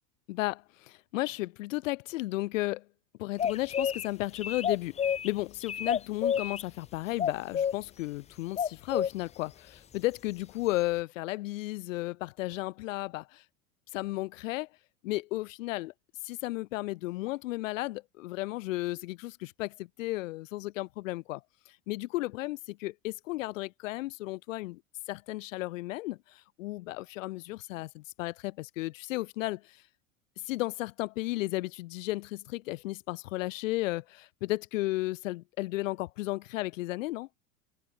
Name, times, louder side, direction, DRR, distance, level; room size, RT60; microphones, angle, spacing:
voice 1, 0.3-2.9 3.2-13.4 13.9-14.7 15.0-15.9 16.2-21.4 21.9-24.8 25.1-29.8 30.4-37.3, left 19 dB, 60° left, 7.1 m, -34 dB
sound 1, 3.4-4.1 4.4-5.3 5.6-6.6 7.2-7.7 8.6-9.1, left 8 dB, 15° left, 0.7 m, -29 dB
open air
figure-of-eight pair, 80°, 44 cm